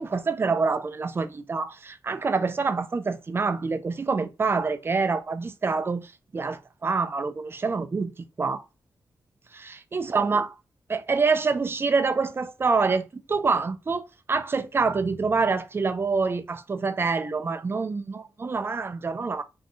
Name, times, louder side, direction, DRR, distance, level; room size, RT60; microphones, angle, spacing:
voice 1, 0.0-8.6 9.5-10.5 10.9-19.4, right 4 dB, 30° right, 0.3 m, -26 dB
2.7 x 2.1 x 2.6 m
cardioid pair, 80°, 8 cm